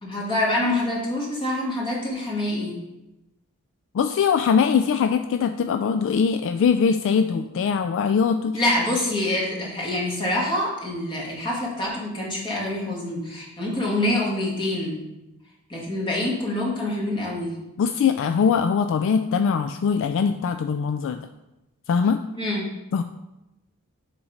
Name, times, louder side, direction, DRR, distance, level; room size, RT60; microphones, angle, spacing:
voice 1, 0.0-2.7 8.5-15.0 15.7-17.6 22.4-22.7, left 1 dB, 25° left, -4 dB, 1.8 m, -26 dB
voice 2, 3.9-8.6 17.8-21.2 21.9-22.2 22.9-23.0, left 6 dB, 60° left, 8 dB, 0.3 m, -22 dB
7.1 x 4.1 x 5.0 m, 0.97 s
head